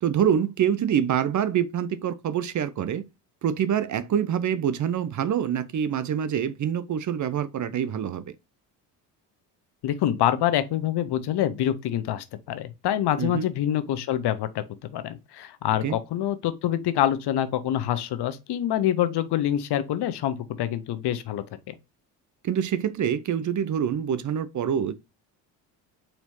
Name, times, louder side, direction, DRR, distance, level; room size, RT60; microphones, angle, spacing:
voice 1, 0.0-3.0 3.4-8.3 13.2-13.5 15.8-16.0 22.4-24.9, right 9 dB, 40° right, 0.6 m, -25 dB
voice 2, 9.8-14.6 14.9-21.4, left 11 dB, 55° left, 0.8 m, -26 dB
4.4 x 4.4 x 2.6 m
supercardioid pair, 65°, 48 cm